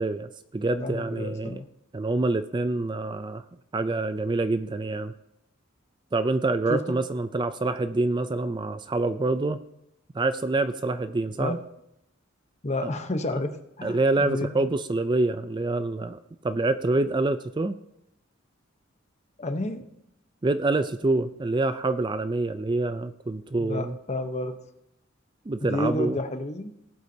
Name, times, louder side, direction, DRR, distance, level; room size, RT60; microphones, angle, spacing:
voice 1, 0.0-1.6 1.9-3.4 3.7-5.1 6.1-9.6 10.1-11.6 13.8-17.8 20.4-24.0 25.5-26.2, right 2 dB, 20° right, 11 dB, 0.4 m, -26 dB
voice 2, 0.8-1.6 6.7-7.0 11.4-11.6 12.6-14.6 19.4-19.8 23.6-24.5 25.6-26.7, left 1 dB, 35° left, 8 dB, 0.9 m, -30 dB
18.5 x 8.1 x 2.8 m, 0.81 s
head